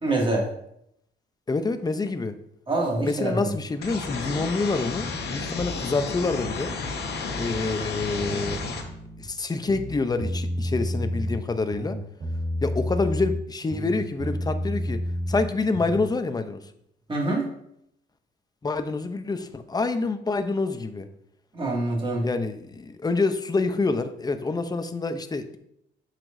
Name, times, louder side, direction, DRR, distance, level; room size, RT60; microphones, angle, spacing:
voice 1, 0.0-0.5 2.7-3.5 17.1-17.5 21.5-22.2, right 2 dB, 25° right, -2 dB, 2.2 m, -25 dB
voice 2, 1.5-2.3 3.0-6.7 7.3-8.6 9.2-12.0 12.6-15.0 15.3-16.6 18.6-21.1 22.2-25.6, left 3 dB, 20° left, 9 dB, 0.6 m, -27 dB
sound 1, 3.8-8.8, left 4 dB, 55° left, 1.2 m, -32 dB
sound 2, 8.2-9.3 9.6-11.4 11.7-13.4 13.7-16.1, equal, 70° right, 2.3 m, -30 dB
7.5 x 5.9 x 2.6 m, 0.75 s
cardioid pair, 90°, 20 cm